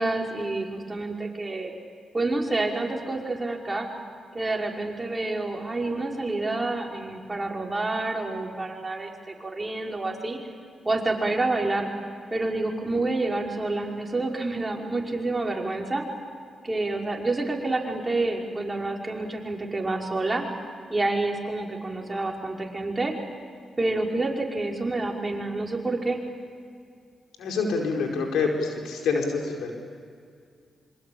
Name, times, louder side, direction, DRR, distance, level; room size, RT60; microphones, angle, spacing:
voice 1, 0.0-1.7 2.1-3.9 4.3-10.4 10.8-11.9 12.3-16.1 16.6-20.4 20.9-23.1 23.8-26.2, right 2 dB, 25° right, 0 dB, 5.4 m, -28 dB
voice 2, 27.4-29.7, left 4 dB, 85° left, 1 dB, 4.7 m, -26 dB
26.5 x 25.5 x 8.8 m, 2.3 s
cardioid pair, 60°, 0 cm